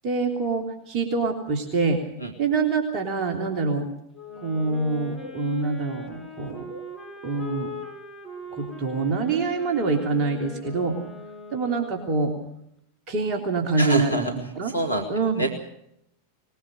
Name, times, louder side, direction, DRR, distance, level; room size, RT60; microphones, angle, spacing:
voice 1, 0.0-2.0 2.4-3.9 4.3-6.8 7.2-7.7 8.5-11.0 11.5-12.3 13.1-14.3 14.5-14.7 15.1-15.4, right 4 dB, 35° right, 3 dB, 3.4 m, -25 dB
Wind instrument woodwind instrument, 4.1-12.4, left 2 dB, 5° left, 7.5 m, -40 dB
voice 2, 13.8-14.3 14.6-15.0 15.4-15.5, right 1 dB, 85° left, 8 dB, 2.4 m, -26 dB
22.0 x 21.0 x 6.4 m, 0.77 s
figure-of-eight pair, 90°, 0 cm